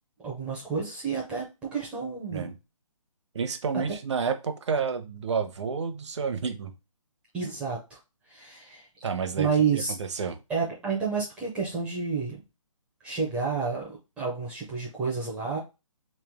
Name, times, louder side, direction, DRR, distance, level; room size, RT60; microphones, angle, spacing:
voice 1, 0.2-1.5 1.7-2.5 3.7-3.8 7.3-8.0 8.3-8.9 9.4-9.9 10.5-12.4 13.0-15.6, right 5 dB, 5° right, -4 dB, 0.5 m, -30 dB
voice 2, 3.3-6.7 9.0-10.4, right 5 dB, 55° right, 7 dB, 0.8 m, -30 dB
3.4 x 3.2 x 3.4 m, 0.26 s
hypercardioid pair, 160°, 17 cm